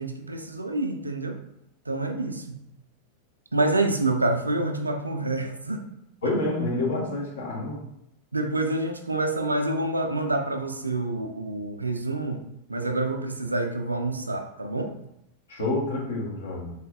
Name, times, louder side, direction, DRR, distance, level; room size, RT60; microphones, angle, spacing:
voice 1, 0.0-1.4 1.9-2.7 3.5-5.9 8.3-14.9, right 2 dB, 80° right, 5 dB, 0.3 m, -27 dB
voice 2, 6.2-7.9 15.5-16.7, left 2 dB, 60° left, -1 dB, 0.9 m, -28 dB
4.1 x 2.5 x 2.4 m, 0.81 s
figure-of-eight pair, 90°, 0 cm